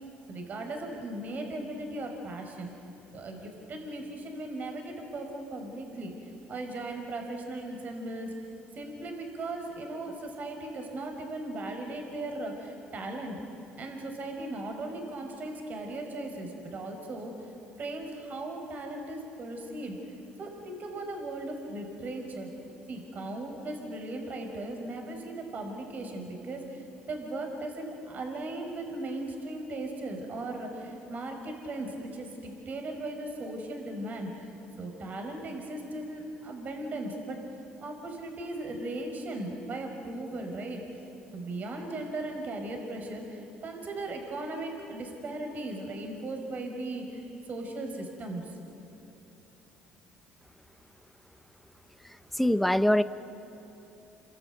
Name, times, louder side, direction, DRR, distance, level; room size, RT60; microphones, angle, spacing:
voice 1, 0.3-2.7 3.1-8.3 8.8-13.4 13.8-17.5 17.8-20.0 20.4-22.5 22.9-34.5 34.8-37.4 37.8-40.8 41.3-47.2 47.5-48.5, right 2 dB, 50° right, 4 dB, 5.2 m, -37 dB
voice 2, 52.4-53.0, left 1 dB, 5° left, 12 dB, 1.1 m, -23 dB
28.5 x 22.5 x 9.4 m, 3.0 s
supercardioid pair, 80°, 4 cm